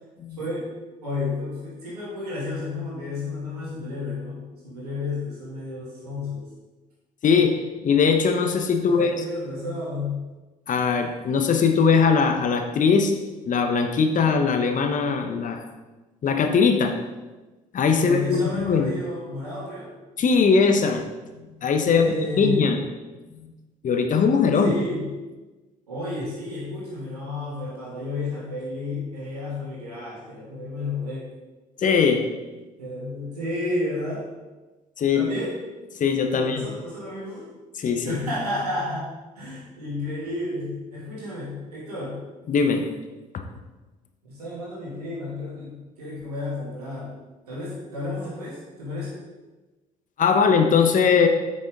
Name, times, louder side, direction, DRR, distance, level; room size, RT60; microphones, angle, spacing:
voice 1, 0.4-0.7 1.0-6.5 8.8-10.2 18.0-19.9 21.8-22.7 24.6-25.1 25.9-31.3 32.8-34.3 35.1-35.6 36.4-37.5 38.0-39.1 39.4-42.2 44.2-47.2 47.5-49.2, left 2 dB, 80° right, -6 dB, 2.6 m, -31 dB
voice 2, 7.2-9.1 10.7-13.2 13.5-15.6 16.2-17.0 17.7-18.9 20.2-21.1 21.3-22.1 22.4-22.8 23.3-23.5 23.8-24.7 31.8-32.2 35.0-35.3 36.0-36.6 37.8-38.2 42.5-42.8 50.2-51.3, left 5 dB, 40° left, 5 dB, 1.1 m, -20 dB
8.9 x 6.2 x 3.9 m, 1.2 s
figure-of-eight pair, 50°, 20 cm